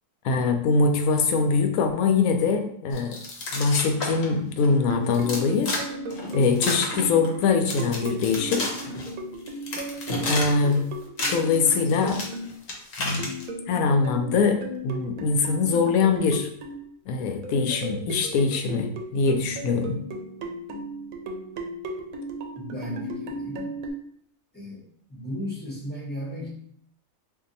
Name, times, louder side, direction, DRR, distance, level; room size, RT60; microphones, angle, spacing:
voice 1, 0.2-3.2 3.5-5.7 6.3-8.7 10.2-10.8 11.3-12.2 13.0-13.3 13.7-16.5 17.1-20.0, left 4 dB, 90° left, 5 dB, 1.0 m, -23 dB
sound 1, 2.9-4.3 4.6-4.7 5.1-5.8 6.1-7.4 7.6-9.1 9.5-10.7 11.0-13.5, left 2 dB, 55° left, 0.9 m, -31 dB
sound 2, 4.7-12.5 13.2-16.9 17.4-23.9, right 1 dB, 85° right, 1.0 m, -36 dB
voice 2, 22.6-23.7 24.5-26.5, equal, 10° left, -5 dB, 0.9 m, -35 dB
2.7 x 2.5 x 3.9 m, 0.65 s
omnidirectional pair, 1.4 m